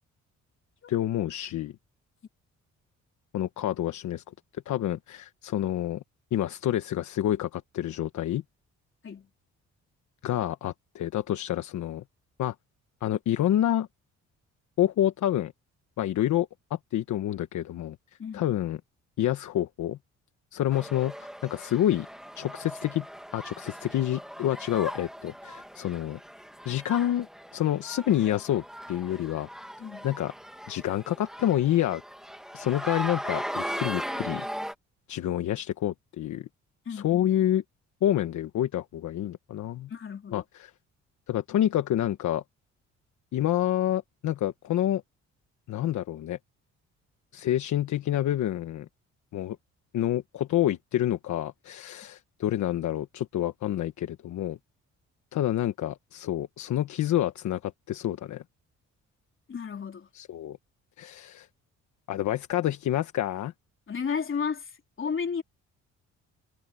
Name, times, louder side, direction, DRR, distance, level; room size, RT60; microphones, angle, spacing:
voice 1, 0.9-1.7 3.3-4.2 4.7-6.0 6.3-8.4 10.2-12.0 12.4-12.5 13.0-13.9 14.8-15.5 16.0-18.0 18.3-18.8 19.2-20.0 20.5-22.1 22.3-23.0 23.3-26.2 26.6-27.3 27.5-29.5 30.0-30.3 30.7-32.0 32.5-34.4 35.1-36.5 36.9-37.6 38.0-39.9 40.3-40.7 41.3-42.4 43.3-45.0 45.7-46.4 47.3-48.8 49.3-49.6 49.9-54.6 55.3-58.4 60.1-60.6 61.0-61.5 62.1-63.5, left 12 dB, 70° left, 1.3 m, -28 dB
voice 2, 18.2-18.6 29.8-30.1 36.9-37.3 39.9-40.4 59.5-60.1 63.9-64.7 65.0-65.4, left 6 dB, 40° left, 3.9 m, -33 dB
sound 1, 20.7-34.7, equal, ahead, 2.4 m, -38 dB
cardioid pair, 90°, 30 cm